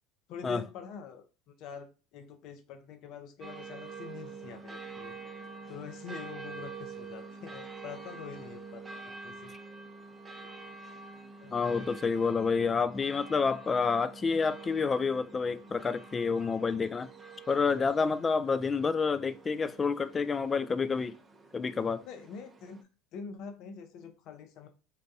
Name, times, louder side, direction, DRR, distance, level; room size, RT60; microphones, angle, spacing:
voice 1, 0.3-5.2 5.7-9.5 11.4-12.4 22.1-22.8 23.1-24.7, left 6 dB, 60° left, 0.7 m, -45 dB
sound 1, 3.4-22.8, right 4 dB, 20° right, 0.6 m, -47 dB
voice 2, 11.5-17.1 17.5-21.2 21.5-22.0, left 5 dB, 25° left, 0.3 m, -29 dB
3.9 x 2.2 x 2.7 m
supercardioid pair, 95°, 0 cm